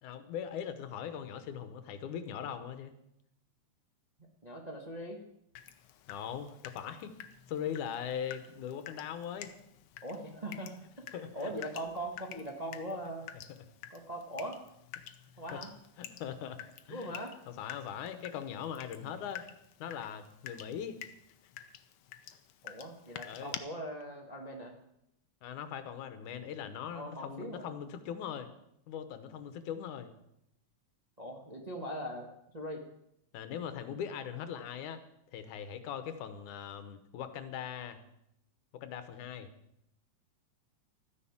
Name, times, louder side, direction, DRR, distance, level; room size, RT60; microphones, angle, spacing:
voice 1, 0.0-2.9 6.1-7.2 7.5-9.5 11.1-11.5 15.5-15.6 16.0-17.1 17.5-19.4 19.8-21.0 23.3-23.6 25.4-28.5 28.9-30.1 33.3-35.0 35.3-38.0 38.7-39.5, left 8 dB, 90° left, 10 dB, 2.6 m, -40 dB
voice 2, 4.4-5.2 10.0-13.3 13.9-14.6 15.4-15.7 16.9-17.4 22.6-24.7 26.9-27.7 31.2-32.8, right 1 dB, 30° right, 1 dB, 0.6 m, -41 dB
Water tap faucet / Drip, 5.6-23.6, left 11 dB, 70° left, 1.7 m, -50 dB
13.5 x 10.0 x 7.2 m, 0.80 s
omnidirectional pair, 3.4 m